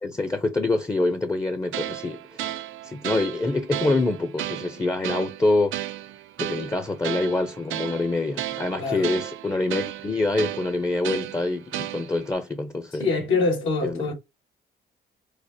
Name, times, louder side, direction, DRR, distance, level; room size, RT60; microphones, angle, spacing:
voice 1, 0.0-5.8 6.4-13.1 13.8-14.0, left 2 dB, 15° left, 0.6 m, -26 dB
sound 1, 1.7-12.3, right 14 dB, 80° right, 0.5 m, -34 dB
voice 2, 8.8-9.2 12.9-14.1, left 4 dB, 85° left, 2.1 m, -24 dB
4.8 x 2.0 x 2.7 m
cardioid pair, 90°, 20 cm